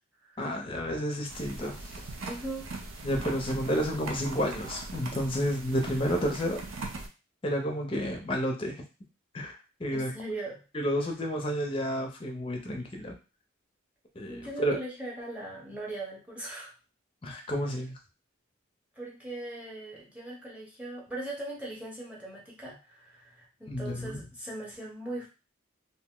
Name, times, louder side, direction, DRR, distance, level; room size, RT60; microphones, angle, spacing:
voice 1, 0.4-2.0 3.0-6.6 7.4-8.8 9.3-10.1 10.7-13.1 14.2-14.8 17.2-18.0 23.7-24.2, equal, 25° left, 2 dB, 0.5 m, -31 dB
sound 1, 1.3-7.1, right 3 dB, 90° right, 0.5 m, -40 dB
voice 2, 2.3-2.7 9.9-10.6 14.3-16.7 19.0-25.3, right 2 dB, 5° right, -4 dB, 0.8 m, -39 dB
2.6 x 2.0 x 3.6 m, 0.31 s
head